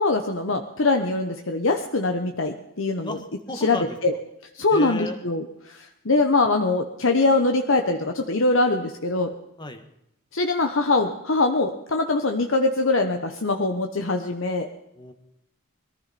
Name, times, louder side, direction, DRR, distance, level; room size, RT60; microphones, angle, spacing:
voice 1, 0.0-3.1 3.6-4.1 4.5-9.3 10.3-14.7, left 3 dB, 70° left, 5 dB, 1.2 m, -23 dB
voice 2, 3.0-4.0 4.7-5.2 9.6-9.8 14.9-15.1, left 1 dB, 20° left, 7 dB, 1.5 m, -34 dB
22.0 x 14.5 x 4.3 m, 0.82 s
head